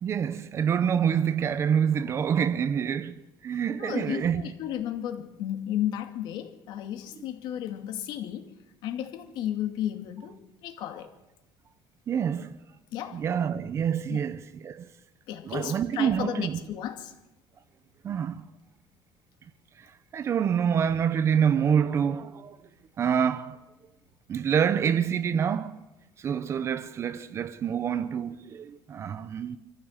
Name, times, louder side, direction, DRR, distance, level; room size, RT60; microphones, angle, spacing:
voice 1, 0.0-3.1 3.4-4.4 12.1-12.6 13.1-14.9 15.5-16.6 18.0-18.4 19.8-19.9 20.1-22.6 23.0-23.6 24.3-25.8 26.2-29.6, right 8 dB, 35° right, 0.9 m, -26 dB
voice 2, 3.8-8.5 8.8-10.4 10.6-11.1 12.9-13.2 14.1-14.2 15.3-17.1, left 11 dB, 65° left, 2.5 m, -33 dB
25.0 x 15.0 x 7.5 m
cardioid pair, 165°, 9 cm